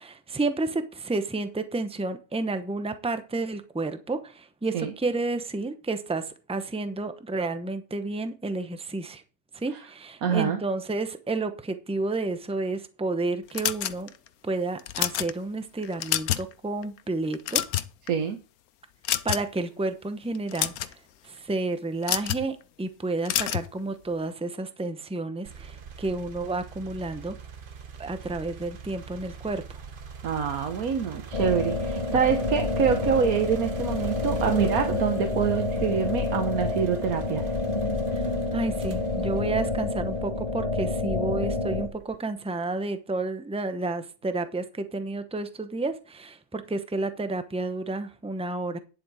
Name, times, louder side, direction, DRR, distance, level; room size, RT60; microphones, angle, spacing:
voice 1, 0.0-9.2 9.5-14.1 14.4-17.6 19.2-20.9 21.2-27.4 28.0-29.6 38.1-38.2 38.5-48.8, right 3 dB, 5° right, 9 dB, 0.6 m, -31 dB
voice 2, 10.2-10.6 18.1-18.4 30.2-37.6, right 7 dB, 75° right, 6 dB, 1.5 m, -26 dB
sound 1, 13.5-14.3 14.8-15.3 15.8-16.5 16.8-17.0 17.3-18.1 19.0-19.6 20.3-20.9 22.0-22.4 23.2-23.7, left 12 dB, 85° left, 1.2 m, -27 dB
sound 2, 25.4-40.5 41.1-42.3, right 6 dB, 40° right, 1.0 m, -43 dB
sound 3, 31.3-41.9, left 3 dB, 25° left, 1.2 m, -28 dB
10.5 x 7.5 x 4.9 m, 0.34 s
omnidirectional pair, 1.5 m